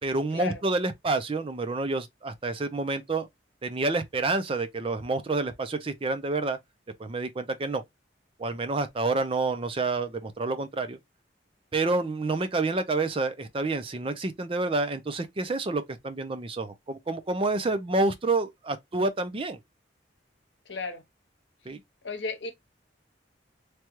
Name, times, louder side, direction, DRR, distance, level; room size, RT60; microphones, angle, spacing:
voice 1, 0.0-3.3 3.6-6.6 7.0-7.8 8.4-11.0 11.7-19.6 21.7-21.8, right 3 dB, 30° right, 0.5 m, -28 dB
voice 2, 20.7-21.0 22.0-22.5, left 3 dB, 75° left, 0.9 m, -34 dB
3.3 x 2.3 x 2.9 m
head